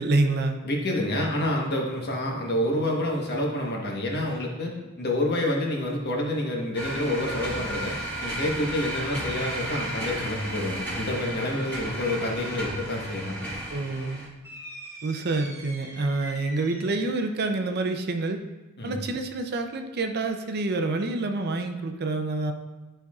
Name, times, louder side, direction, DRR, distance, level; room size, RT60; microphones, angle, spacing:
voice 1, 0.0-0.6 13.7-14.2 15.0-18.4 18.8-22.5, right 2 dB, 50° right, 6 dB, 0.5 m, -27 dB
voice 2, 0.6-13.5 18.8-19.0, left 1 dB, 50° left, 0 dB, 1.1 m, -28 dB
sound 1, 6.7-14.3, right 1 dB, 5° left, 1.6 m, -34 dB
sound 2, 14.4-17.3, equal, 15° right, 1.1 m, -43 dB
10.5 x 4.4 x 2.4 m, 1.2 s
head